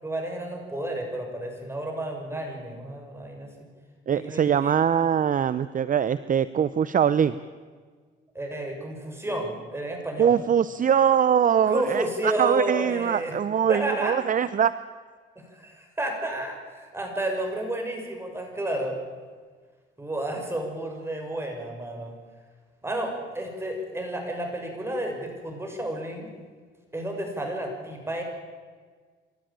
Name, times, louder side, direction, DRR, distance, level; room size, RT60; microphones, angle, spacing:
voice 1, 0.0-3.5 4.1-4.8 8.3-10.3 11.7-13.3 13.7-14.2 15.3-19.0 20.0-22.1 22.8-26.3 26.9-28.2, right 1 dB, 10° right, 2 dB, 6.8 m, -31 dB
voice 2, 4.1-7.4 10.2-14.7, right 8 dB, 40° right, 15 dB, 0.7 m, -22 dB
28.0 x 13.0 x 9.0 m, 1.5 s
cardioid pair, 90°, 20 cm